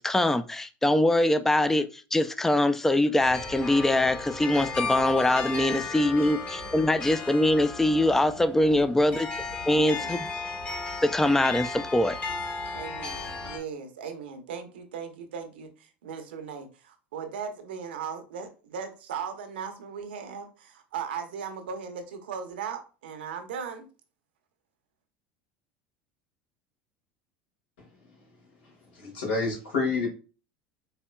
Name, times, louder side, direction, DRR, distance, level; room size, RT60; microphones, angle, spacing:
voice 1, 0.0-9.3 9.7-10.3 11.0-12.2, left 1 dB, 5° left, 0.3 m, -23 dB
sound 1, 3.2-13.6, left 4 dB, 30° left, 1.3 m, -35 dB
voice 2, 9.6-10.4 12.7-23.9, right 6 dB, 90° right, 0.8 m, -38 dB
voice 3, 28.9-30.1, left 4 dB, 85° left, 2.0 m, -28 dB
4.2 x 3.5 x 2.2 m
supercardioid pair, 95°, 5 cm